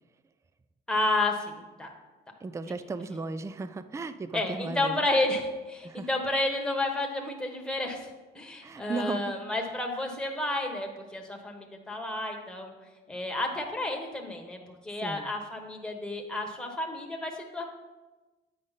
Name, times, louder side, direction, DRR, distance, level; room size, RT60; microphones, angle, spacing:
voice 1, 0.9-1.9 4.3-12.7 13.1-17.6, left 2 dB, 5° left, 1 dB, 1.3 m, -31 dB
voice 2, 2.4-5.0 5.8-6.1 8.6-9.2 14.9-15.3, right 4 dB, 15° right, 12 dB, 0.3 m, -35 dB
8.6 x 5.0 x 4.1 m, 1.2 s
cardioid pair, 90°, 20 cm